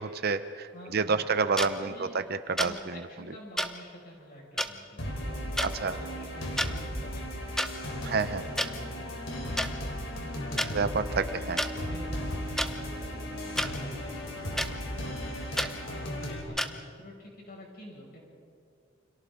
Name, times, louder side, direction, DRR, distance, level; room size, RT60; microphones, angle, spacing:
voice 1, 0.0-2.9 5.6-6.0 8.1-8.4 10.7-11.6, right 4 dB, 55° right, 11 dB, 0.7 m, -29 dB
voice 2, 0.7-1.4 1.8-2.2 2.6-7.5 7.8-10.7 11.1-11.2 11.6-15.3 15.8-18.2, equal, 50° left, -2 dB, 6.5 m, -48 dB
sound 1, 1.6-1.7 2.6-2.7 3.6-3.7 4.6-4.7 5.6-5.7 6.4-6.7 7.6-7.7 8.6-8.7 9.6-9.7 10.6-10.7 11.6-11.7 12.6-12.7 13.6-13.7 14.6-14.7 15.6-15.7 16.6-16.7, equal, ahead, 0.9 m, -29 dB
sound 2, 5.0-16.4, equal, 70° left, 3.8 m, -36 dB
29.5 x 26.5 x 3.9 m, 2.2 s
head